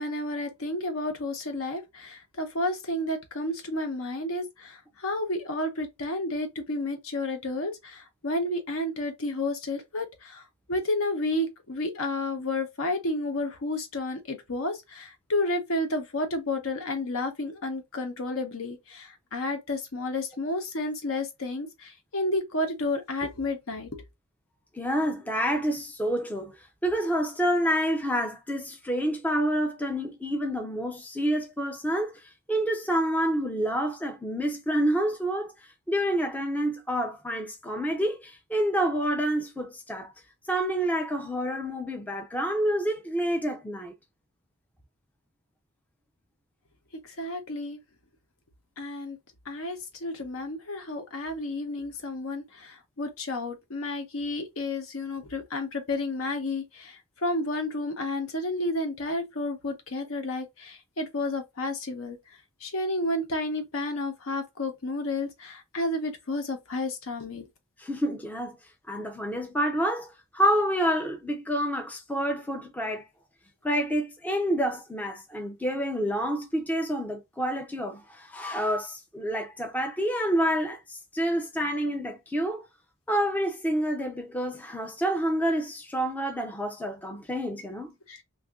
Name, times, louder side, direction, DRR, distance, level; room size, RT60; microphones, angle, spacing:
voice 1, 0.0-24.0 47.0-47.8 48.8-49.2 49.5-62.2 62.6-67.5 88.1-88.2, left 2 dB, 65° left, 0.9 m, -31 dB
voice 2, 24.7-26.6 26.8-32.2 32.5-35.5 35.9-40.1 40.5-43.9 67.8-68.6 68.9-73.0 73.6-82.7 83.1-87.9, equal, 5° left, 0.4 m, -28 dB
2.7 x 2.4 x 3.6 m
head